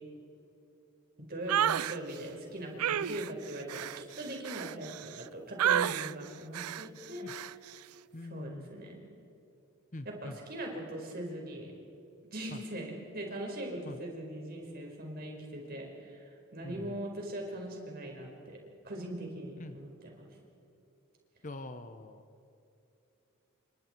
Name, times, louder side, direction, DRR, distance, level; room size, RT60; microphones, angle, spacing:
voice 1, 1.3-7.2 8.3-9.0 10.0-11.7 12.3-18.6 18.8-20.2, right 1 dB, 45° right, 0 dB, 5.0 m, -41 dB
sound 1, 1.5-2.0 2.8-5.2 5.6-6.1 6.5-6.9 7.3-7.5, right 10 dB, 85° right, 0.4 m, -31 dB
voice 2, 8.1-8.7 9.9-10.4 12.5-12.6 13.8-14.0 16.6-17.0 19.6-19.8 21.4-22.2, left 2 dB, 35° left, 10 dB, 0.9 m, -44 dB
29.5 x 25.5 x 4.6 m, 2.8 s
head